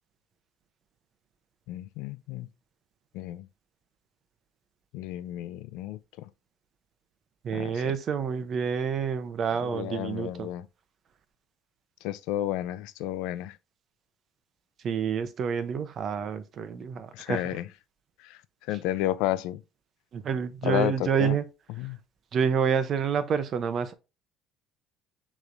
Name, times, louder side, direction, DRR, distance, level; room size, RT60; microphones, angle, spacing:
voice 1, 1.7-2.5 3.1-3.5 4.9-6.3 7.5-7.8 9.6-10.7 12.0-13.6 17.1-17.7 18.2-18.4 18.7-19.6 20.6-21.4 21.8-22.0, left 14 dB, 85° left, 0.4 m, -32 dB
voice 2, 7.4-10.5 14.8-17.5 20.1-21.4 22.3-23.9, right 7 dB, 40° right, 0.6 m, -28 dB
6.5 x 3.1 x 2.6 m
cardioid pair, 155°, 0 cm